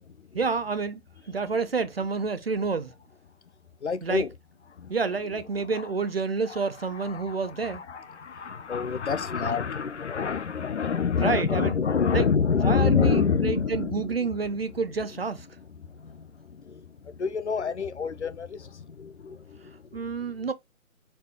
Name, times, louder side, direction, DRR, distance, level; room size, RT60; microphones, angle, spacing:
voice 1, 0.3-1.0 1.3-2.9 4.0-4.2 4.9-7.8 11.2-11.8 12.1-12.3 12.6-15.5 19.9-20.5, right 4 dB, 45° right, 0.5 m, -29 dB
voice 2, 3.8-4.3 4.8-4.9 5.7-5.9 6.5-6.6 6.9-14.5 15.6-20.0, left 6 dB, 55° left, 0.5 m, -28 dB
4.3 x 3.4 x 2.7 m
figure-of-eight pair, 145°, 42 cm